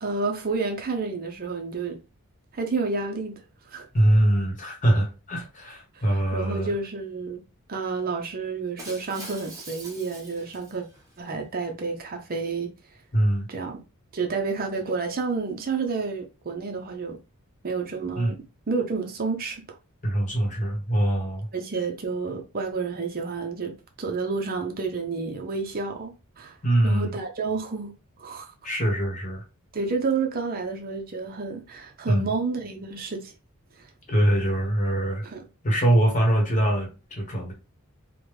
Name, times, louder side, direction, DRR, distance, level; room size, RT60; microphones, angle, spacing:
voice 1, 0.0-2.0 2.5-3.9 5.9-7.4 7.7-10.8 11.2-12.7 13.5-13.8 14.1-17.2 17.6-18.3 18.7-19.6 21.5-26.6 26.8-27.9 28.2-28.5 29.7-33.3 33.8-33.9 35.2-35.5, right 4 dB, 40° right, 0.5 m, -30 dB
voice 2, 3.9-6.7 13.1-13.5 18.2-18.4 20.0-21.5 26.6-27.1 28.6-29.4 32.1-32.3 34.1-35.2 35.6-37.5, right 1 dB, 35° left, 1.0 m, -23 dB
Shatter, 8.8-11.2, right 2 dB, 15° right, 0.9 m, -43 dB
3.4 x 2.1 x 3.1 m
head